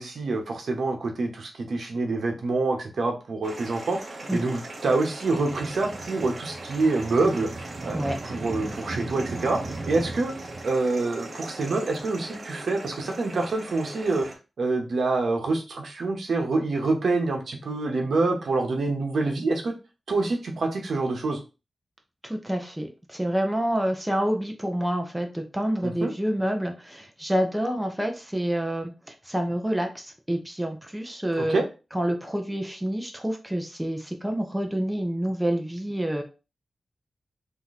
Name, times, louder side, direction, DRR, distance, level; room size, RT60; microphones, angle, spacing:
voice 1, 0.0-7.5 7.8-9.6 9.9-10.3 10.6-14.3 14.6-19.7 20.1-21.4 25.8-26.1 31.4-31.6, right 3 dB, 70° right, 3 dB, 1.0 m, -26 dB
sound 1, 3.4-14.3, right 2 dB, 45° right, 1.0 m, -37 dB
voice 2, 22.2-31.6 31.9-36.2, equal, 5° right, 3 dB, 0.8 m, -28 dB
3.7 x 2.8 x 4.1 m, 0.30 s
wide cardioid pair, 115°, 0 cm